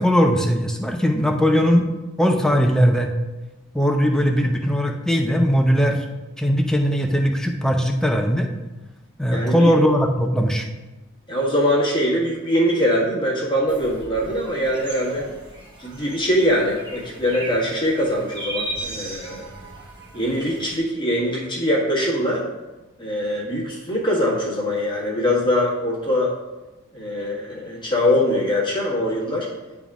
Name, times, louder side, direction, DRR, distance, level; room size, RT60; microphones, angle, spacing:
voice 1, 0.0-1.9 2.2-3.1 3.7-6.1 6.4-8.5 9.2-10.7, equal, 5° left, 3 dB, 0.5 m, -19 dB
voice 2, 9.3-9.7 11.3-15.3 15.8-19.4 20.1-22.5 23.0-26.3 26.9-29.5, equal, 20° left, -5 dB, 1.5 m, -22 dB
sound 1, 13.7-20.8, right 1 dB, 20° right, 1.4 m, -37 dB
10.5 x 3.6 x 3.6 m, 1.1 s
head